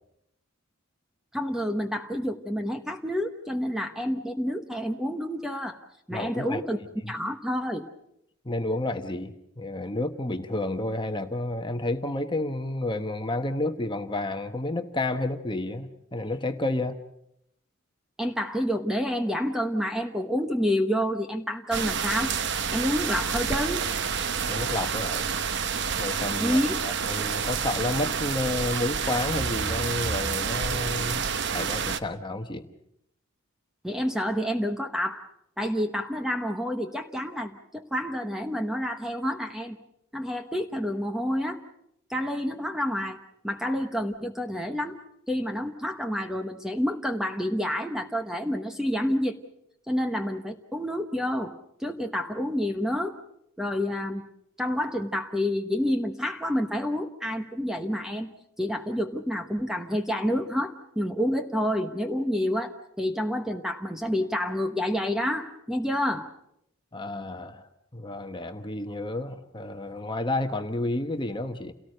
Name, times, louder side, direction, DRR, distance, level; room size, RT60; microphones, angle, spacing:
voice 1, 1.3-5.8 6.1-6.8 7.1-7.8 18.2-22.4 22.7-23.8 26.4-26.7 33.8-35.2 35.6-39.8 40.1-41.6 42.1-43.2 43.4-45.0 45.3-49.4 49.9-51.5 51.8-53.1 53.6-54.2 54.6-58.3 58.6-66.3, equal, ahead, 5 dB, 1.0 m, -28 dB
voice 2, 6.1-6.6 7.0-7.1 8.4-17.0 24.5-25.3 26.0-32.7 66.9-67.7 67.9-71.7, left 2 dB, 20° left, 7 dB, 1.2 m, -30 dB
sound 1, 21.7-32.0, right 6 dB, 55° right, 0.9 m, -29 dB
29.0 x 18.0 x 6.6 m, 0.78 s
head